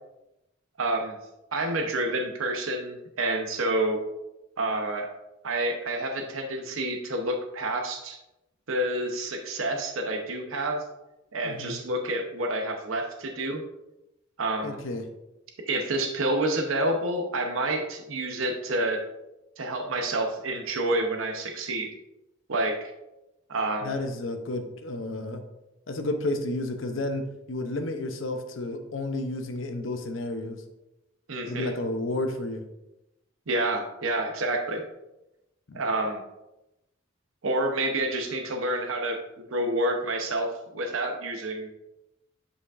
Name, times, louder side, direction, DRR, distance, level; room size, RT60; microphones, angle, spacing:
voice 1, 0.8-1.2 1.5-4.0 4.6-5.1 5.4-8.2 8.7-10.8 11.3-13.6 14.4-14.8 15.6-19.0 19.6-21.9 22.5-22.9 23.5-24.0 31.3-31.7 33.5-34.8 35.7-36.2 37.4-39.2 39.5-40.5 40.7-41.7, right 1 dB, 85° right, 3 dB, 0.8 m, -28 dB
voice 2, 11.4-11.8 14.6-15.1 23.8-25.4 25.9-30.6 31.4-32.6 35.7-35.8, left 2 dB, 70° left, 6 dB, 0.8 m, -31 dB
8.4 x 5.1 x 2.5 m, 0.94 s
head